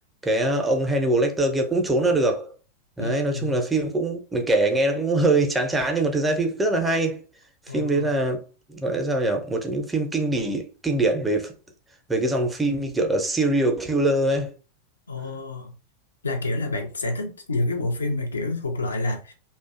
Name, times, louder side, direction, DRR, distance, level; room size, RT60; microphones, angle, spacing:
voice 1, 0.2-2.5 3.0-7.2 7.7-8.4 8.7-11.5 12.1-14.5, right 2 dB, 10° right, 0.5 m, -23 dB
voice 2, 3.0-3.6 7.7-8.1 15.1-15.7 16.2-19.3, left 2 dB, 75° left, 0.5 m, -28 dB
2.5 x 2.1 x 2.4 m
figure-of-eight pair, 90°, 0 cm